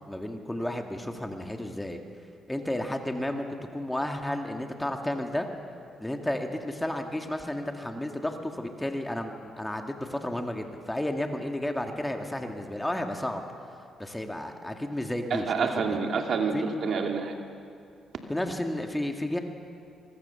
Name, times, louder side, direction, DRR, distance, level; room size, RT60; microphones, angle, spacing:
voice 1, 0.0-2.0 2.5-3.4 3.7-5.5 6.0-13.4 14.0-16.0 16.5-16.7 18.3-19.4, left 1 dB, 10° left, 4 dB, 2.2 m, -32 dB
voice 2, 15.3-17.3, right 5 dB, 60° right, 4 dB, 2.5 m, -28 dB
24.5 x 23.0 x 7.1 m, 2.4 s
cardioid pair, 90°, 0 cm